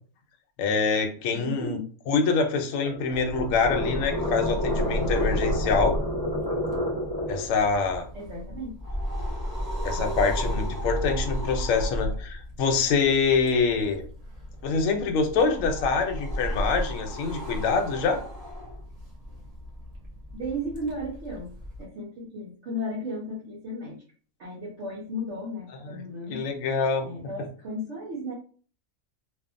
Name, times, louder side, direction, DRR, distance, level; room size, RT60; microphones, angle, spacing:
voice 1, 0.6-1.8 2.1-6.0 7.3-8.1 9.8-14.0 14.6-18.2 26.3-27.1, left 4 dB, 70° left, 4 dB, 0.9 m, -25 dB
voice 2, 1.3-1.9 8.1-8.8 20.3-21.5 21.8-24.0 24.4-26.4 27.0-28.3, equal, 60° right, -5 dB, 1.0 m, -34 dB
annoyed dragon, 2.6-7.5, left 1 dB, 15° right, 1.3 m, -30 dB
sound 1, 3.1-21.8, equal, 35° right, 0.7 m, -34 dB
2.6 x 2.4 x 2.5 m, 0.40 s
omnidirectional pair, 1.5 m